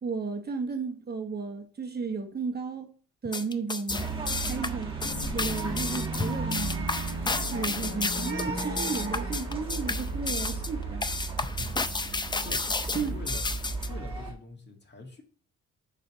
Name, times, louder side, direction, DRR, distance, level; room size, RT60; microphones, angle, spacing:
voice 1, 0.0-2.9 3.2-4.0 4.4-4.9 5.3-6.9 7.5-11.1 12.9-13.1, right 5 dB, 35° right, 1.1 m, -33 dB
sound 1, 3.2-13.9, left 3 dB, 15° left, 0.5 m, -32 dB
sound 2, 3.9-14.3, right 3 dB, 15° right, 1.6 m, -34 dB
sound 3, 4.9-11.0, left 4 dB, 60° left, 1.1 m, -44 dB
voice 2, 11.5-11.9 12.4-12.6 12.9-13.5 13.9-15.2, left 2 dB, 35° left, 1.8 m, -43 dB
6.4 x 3.4 x 6.0 m
cardioid pair, 90°, 30 cm